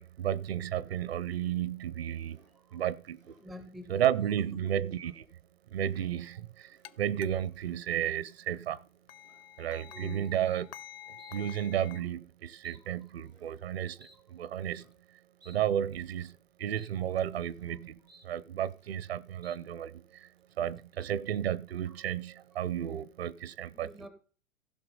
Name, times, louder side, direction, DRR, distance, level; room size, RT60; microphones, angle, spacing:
voice 1, 0.0-2.4 2.7-3.3 3.9-5.2 5.7-8.8 9.6-10.7 11.3-14.8 15.5-16.3 16.6-18.0 18.2-20.3 20.6-23.9, right 10 dB, 50° right, 0.7 m, -33 dB
sound 1, 2.2-2.6 3.0-3.5 3.9-4.4 4.7-5.2 5.7-6.2 6.5-7.0 7.4-7.8 8.3-8.6 9.2-9.5 10.3-10.7 11.2-11.4 11.7-12.1 12.6-12.8 13.2-13.6 14.0-14.2 14.6-15.0 15.4-15.6 16.0-16.4 16.7-16.9 17.2-17.7 18.1-18.3 18.6-19.1 19.4-19.6, right 2 dB, 85° right, 3.4 m, -62 dB
voice 2, 2.5-2.9 3.4-4.1 4.4-4.7 9.9-10.3 12.8-12.9 13.3-13.4 17.7-17.8 21.9-22.0 23.7-24.1, left 1 dB, ahead, 0.5 m, -48 dB
sound 2, 6.8-6.9 7.2-7.3 9.1-12.0, left 12 dB, 45° left, 0.7 m, -49 dB
16.0 x 5.8 x 5.4 m
figure-of-eight pair, 115°, 40 cm